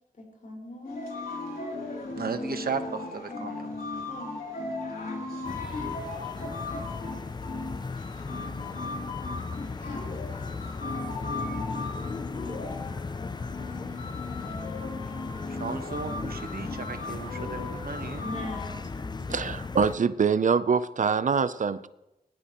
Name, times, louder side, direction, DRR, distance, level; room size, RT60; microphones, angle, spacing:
voice 1, 0.2-1.0 2.2-2.6 3.0-3.5 4.1-4.3 5.7-5.8 18.2-19.4, left 2 dB, 55° left, -1 dB, 4.9 m, -41 dB
sound 1, 0.9-18.7, left 3 dB, 75° left, 3.4 m, -37 dB
voice 2, 2.2-3.7 15.5-18.2, right 5 dB, 75° right, 8 dB, 1.1 m, -35 dB
sound 2, 5.4-20.0, left 4 dB, 30° left, 0.4 m, -37 dB
voice 3, 19.3-21.9, right 6 dB, 55° right, 15 dB, 0.5 m, -24 dB
19.5 x 17.0 x 3.0 m, 0.96 s
wide cardioid pair, 90°, 15 cm